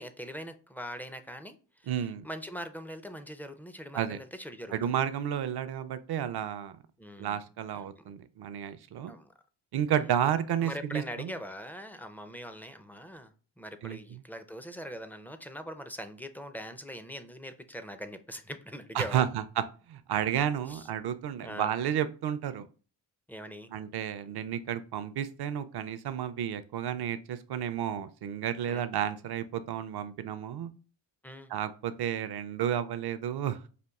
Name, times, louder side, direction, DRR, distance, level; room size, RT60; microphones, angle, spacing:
voice 1, 0.0-4.9 7.0-7.4 8.0-8.1 9.1-9.3 10.0-10.2 10.6-19.2 20.7-20.9 21.4-21.7 23.3-23.7 28.7-28.9 31.2-31.5, equal, 5° left, 0.4 m, -42 dB
voice 2, 1.9-2.3 3.9-4.2 4.7-6.7 7.2-9.1 9.7-11.3 13.8-14.2 18.9-22.7 23.7-30.7 31.5-33.7, right 9 dB, 55° right, 0.5 m, -32 dB
5.2 x 2.5 x 2.3 m
cardioid pair, 60°, 48 cm